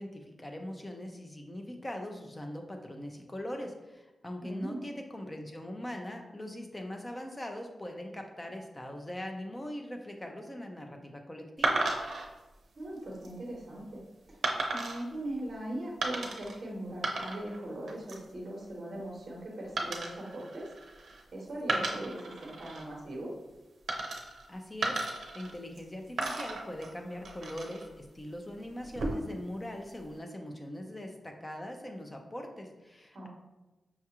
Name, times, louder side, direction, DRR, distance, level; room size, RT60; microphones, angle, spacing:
voice 1, 0.0-11.8 24.5-25.0 25.3-33.3, left 1 dB, 15° left, 3 dB, 0.5 m, -41 dB
voice 2, 4.4-4.8 12.8-14.0 14.3-14.4 14.7-20.7 21.3-23.3 33.1-33.3, right 1 dB, 40° right, -3 dB, 0.9 m, -39 dB
sound 1, 11.6-12.3 13.0-13.3 14.4-15.0 16.0-16.6 16.9-17.6 17.9-18.3 19.8-21.2 21.6-22.8 23.9-24.5 24.8-25.8 26.2-27.9 28.8-29.4, right 2 dB, 80° right, 0.6 m, -34 dB
5.6 x 2.3 x 2.9 m, 1.1 s
wide cardioid pair, 140°, 0 cm